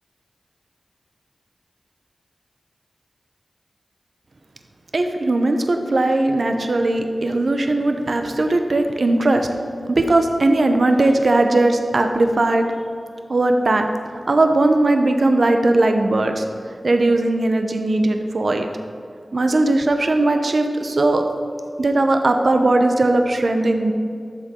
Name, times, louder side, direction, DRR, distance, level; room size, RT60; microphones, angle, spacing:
voice 1, 4.9-9.5 9.9-12.7 13.3-13.9 14.3-16.4 16.8-18.7 19.3-21.2 21.8-23.9, right 2 dB, 65° right, 5 dB, 0.8 m, -18 dB
12.5 x 7.4 x 3.8 m, 2.3 s
wide cardioid pair, 55°, 0 cm